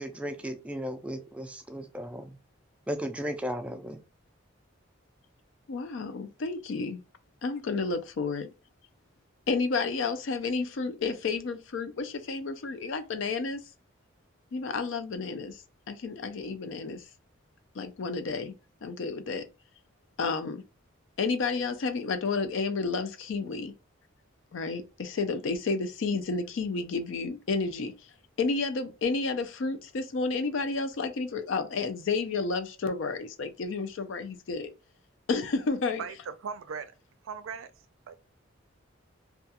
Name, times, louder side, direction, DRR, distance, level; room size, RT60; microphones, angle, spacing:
voice 1, 0.0-2.4 2.9-4.0, equal, 5° right, 0.3 m, -35 dB
voice 2, 5.7-7.0 7.4-8.5 9.5-13.6 14.5-15.6 15.9-17.0 17.8-18.5 18.8-19.5 20.2-20.6 21.2-23.7 24.5-28.1 28.4-34.7 35.3-36.0, left 4 dB, 70° left, 0.4 m, -31 dB
voice 3, 36.0-36.9 37.2-37.7 38.1-38.2, right 6 dB, 85° right, 0.4 m, -38 dB
2.3 x 2.2 x 2.8 m
head